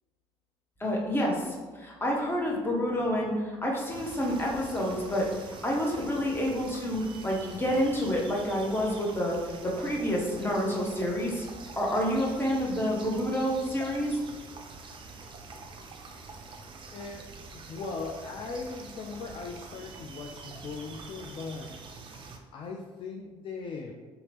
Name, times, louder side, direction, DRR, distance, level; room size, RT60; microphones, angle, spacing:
voice 1, 0.8-9.4 9.6-11.5 11.7-14.2, equal, 15° left, -2 dB, 0.8 m, -28 dB
sound 1, 3.9-22.4, right 3 dB, 35° right, 0.4 m, -45 dB
voice 2, 16.9-21.7 22.5-23.9, left 4 dB, 35° left, 0 dB, 0.3 m, -39 dB
2.8 x 2.5 x 2.9 m, 1.3 s
figure-of-eight pair, 50°, 15 cm